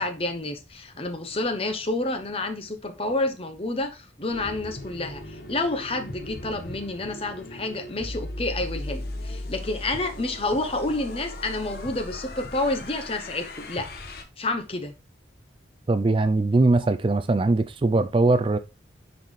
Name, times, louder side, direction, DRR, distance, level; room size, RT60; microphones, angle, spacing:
voice 1, 0.0-13.9 14.4-14.9, left 2 dB, 30° left, 0.8 m, -29 dB
sound 1, 4.3-14.2, left 1 dB, 50° left, 1.1 m, -37 dB
voice 2, 15.9-18.6, right 2 dB, 25° right, 0.3 m, -21 dB
10.0 x 4.1 x 3.2 m
head